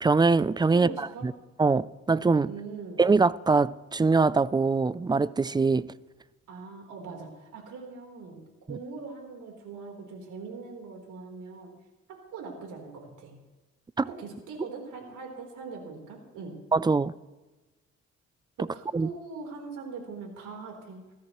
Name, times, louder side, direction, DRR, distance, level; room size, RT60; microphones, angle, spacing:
voice 1, 0.0-1.3 1.6-2.5 3.0-5.9 8.7-8.8 14.0-14.1 16.7-17.1 18.9-19.1, right 4 dB, 15° right, 0.4 m, -23 dB
voice 2, 0.7-1.3 2.4-3.0 6.5-8.4 8.7-11.7 12.1-13.3 14.1-16.6 18.6-21.0, right 4 dB, 80° right, 3.9 m, -41 dB
20.5 x 14.0 x 3.1 m
cardioid pair, 90°, 30 cm